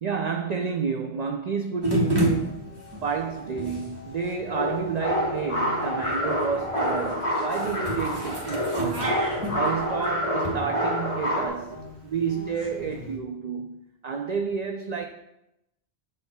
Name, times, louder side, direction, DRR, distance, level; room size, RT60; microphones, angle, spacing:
voice 1, 0.0-9.2 9.5-11.8 12.0-15.1, right 6 dB, 55° right, 0.5 m, -30 dB
sound 1, 1.8-13.2, right 1 dB, 25° right, 1.4 m, -32 dB
sound 2, 4.5-11.5, equal, 35° left, 1.1 m, -28 dB
sound 3, 8.9-9.4, right 2 dB, 75° right, 1.6 m, -32 dB
13.0 x 4.5 x 2.3 m
omnidirectional pair, 1.1 m